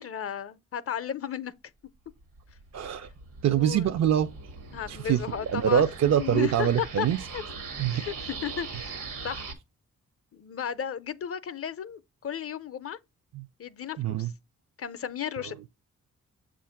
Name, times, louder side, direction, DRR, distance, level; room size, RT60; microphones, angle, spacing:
voice 1, 0.0-1.5 3.5-3.9 4.7-5.8 6.2-7.1 7.3-7.4 7.9-8.9 9.2-9.5 10.3-13.0 13.6-14.3 14.8-15.7, left 8 dB, 45° left, 0.5 m, -34 dB
sound 1, 2.2-9.5, right 4 dB, 85° right, 1.2 m, -41 dB
voice 2, 2.7-3.1 3.4-4.3 4.9-5.2 5.5-7.2 7.8-8.0 13.3-13.4 14.0-14.3, right 9 dB, 55° right, 0.4 m, -24 dB
7.1 x 2.5 x 5.6 m
cardioid pair, 60°, 32 cm